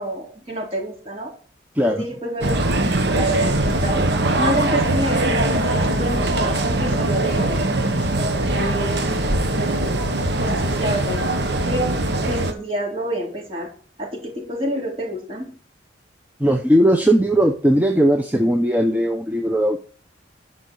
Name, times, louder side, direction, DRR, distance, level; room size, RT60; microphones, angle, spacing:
voice 1, 0.0-1.3 1.8-2.6 2.9-7.6 8.0-9.1 9.4-10.1 10.4-11.9 12.2-13.7 14.0-15.6, right 1 dB, 35° right, -2 dB, 4.0 m, -28 dB
sound 1, 2.4-12.5, right 1 dB, 65° right, 1.3 m, -21 dB
voice 2, 16.4-19.8, equal, 10° right, 4 dB, 0.7 m, -18 dB
11.0 x 5.6 x 6.3 m, 0.43 s
head